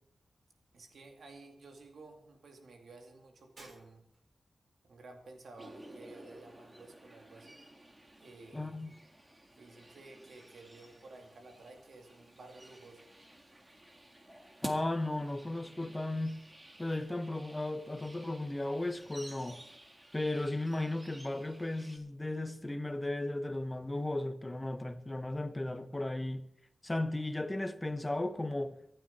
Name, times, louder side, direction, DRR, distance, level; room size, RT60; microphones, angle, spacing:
voice 1, 0.7-4.0 4.8-7.6 8.2-8.8 9.5-13.0, right 3 dB, 85° right, 2.5 m, -53 dB
Shatter, 3.6-4.4, right 1 dB, 55° right, 5.8 m, -56 dB
sound 1, 5.6-22.0, right 1 dB, 20° right, 1.8 m, -52 dB
voice 2, 8.5-8.9 14.6-16.4 16.8-19.6 20.1-26.4 26.8-28.7, left 2 dB, 20° left, 1.2 m, -35 dB
25.0 x 9.2 x 4.3 m
wide cardioid pair, 100°, 0 cm